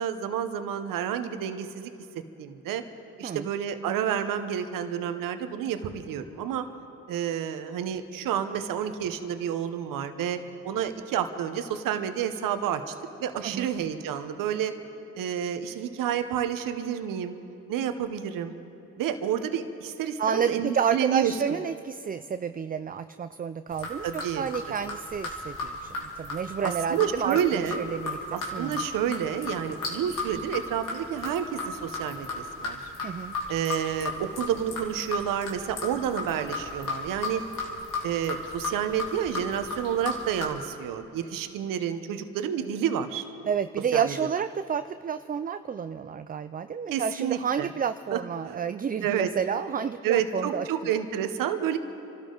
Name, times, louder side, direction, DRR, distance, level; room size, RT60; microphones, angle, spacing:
voice 1, 0.0-1.9 2.4-2.8 3.2-6.6 7.1-12.9 13.2-14.7 15.1-17.4 17.7-18.5 19.0-21.3 24.0-24.5 26.6-27.9 28.3-32.9 33.5-37.4 38.0-43.2 43.9-44.1 46.9-47.7 48.1-48.2 48.4-48.6 49.0-49.3 50.0-51.8, right 9 dB, 85° right, 9 dB, 1.0 m, -29 dB
voice 2, 20.2-28.8 33.0-33.3 43.4-50.7, right 7 dB, 25° right, 11 dB, 0.4 m, -30 dB
sound 1, 23.7-40.5, left 3 dB, 70° left, 3.2 m, -35 dB
27.5 x 13.0 x 3.9 m, 2.9 s
cardioid pair, 70°, 32 cm